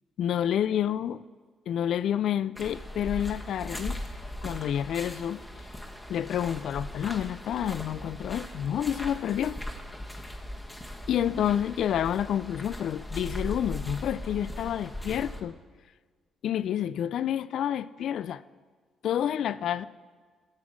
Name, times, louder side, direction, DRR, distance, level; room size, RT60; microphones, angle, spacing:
voice 1, 0.2-1.2 1.7-4.0 4.4-5.4 6.1-9.6 11.1-15.6 16.4-18.4 19.0-19.8, left 10 dB, 70° left, 0.3 m, -29 dB
sound 1, 2.6-15.4, left 1 dB, 10° left, 1.1 m, -39 dB
11.5 x 6.2 x 6.1 m
cardioid pair, 90°, 0 cm